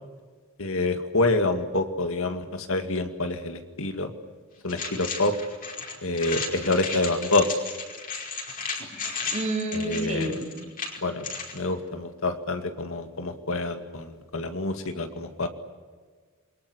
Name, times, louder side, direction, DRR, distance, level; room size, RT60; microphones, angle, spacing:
voice 1, 0.6-4.1 4.6-5.3 6.0-7.5 9.7-10.4 11.0-11.3 11.5-15.5, left 2 dB, 65° left, 7 dB, 2.2 m, -27 dB
sound 1, 4.7-11.6, left 4 dB, 40° left, 5.1 m, -34 dB
voice 2, 9.3-10.5, right 2 dB, 35° right, 1 dB, 4.4 m, -29 dB
28.5 x 23.0 x 8.2 m, 1.5 s
head